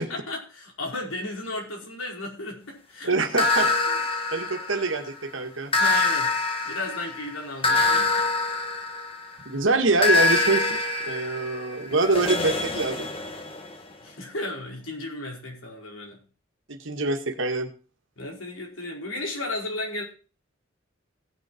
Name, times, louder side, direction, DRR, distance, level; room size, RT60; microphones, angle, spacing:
voice 1, 0.0-3.1 5.7-6.3 6.6-8.1 14.0-16.2 18.2-20.0, left 2 dB, 85° left, 0 dB, 4.9 m, -34 dB
voice 2, 3.1-4.0 4.3-5.7 9.5-13.1 16.7-17.7, right 3 dB, 65° right, 5 dB, 1.9 m, -25 dB
sound 1, 3.4-5.1 5.7-9.4 10.0-13.7, left 3 dB, 25° left, 1.6 m, -25 dB
17.5 x 6.7 x 4.5 m, 0.35 s
head